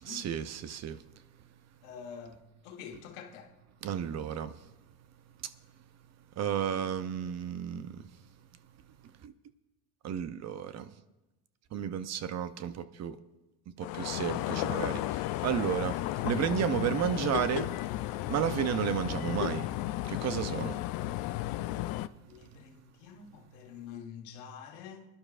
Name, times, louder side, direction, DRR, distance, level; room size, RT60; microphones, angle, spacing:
voice 1, 0.0-1.0 3.8-4.6 5.4-5.5 6.4-8.0 9.2-9.3 10.0-10.9 11.7-13.2 13.8-17.7 18.3-19.7 20.0-20.8, right 9 dB, 40° right, 0.6 m, -32 dB
voice 2, 1.8-3.5 22.3-25.1, left 7 dB, 85° left, 1.5 m, -47 dB
sound 1, 13.8-22.1, left 15 dB, 55° left, 0.5 m, -34 dB
22.5 x 11.0 x 2.5 m
supercardioid pair, 110°, 43 cm